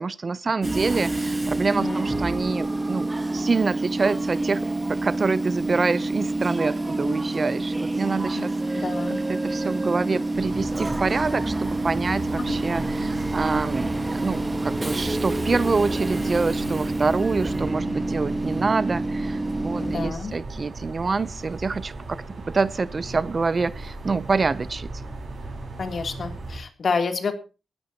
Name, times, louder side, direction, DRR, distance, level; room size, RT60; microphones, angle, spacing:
voice 1, 0.0-4.6 4.9-25.0, right 4 dB, 35° right, 17 dB, 0.6 m, -26 dB
Train / Subway metro underground, 0.6-20.1, right 2 dB, 15° right, 1.5 m, -27 dB
voice 2, 8.7-9.2 12.5-12.6 19.8-20.3 25.8-27.4, left 4 dB, 50° left, 6 dB, 2.9 m, -29 dB
sound 1, 10.3-26.6, right 2 dB, 50° right, 5.5 m, -36 dB
20.5 x 11.5 x 2.9 m, 0.32 s
wide cardioid pair, 135°, 0 cm